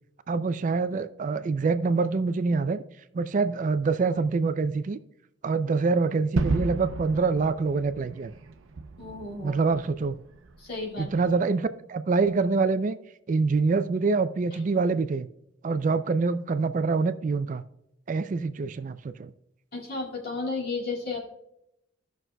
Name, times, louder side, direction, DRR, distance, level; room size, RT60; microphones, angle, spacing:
voice 1, 0.3-2.8 3.1-5.0 5.4-8.3 9.4-10.2 11.0-13.0 13.3-15.3 15.6-17.6 18.1-19.3, right 4 dB, 40° right, 0.3 m, -25 dB
Gunshot gunfire / Fireworks / Boom, 6.4-11.2, right 3 dB, 85° right, 0.6 m, -33 dB
voice 2, 9.0-9.6 10.6-11.1 19.7-21.2, left 3 dB, 50° left, 2.2 m, -33 dB
16.5 x 6.1 x 2.2 m
head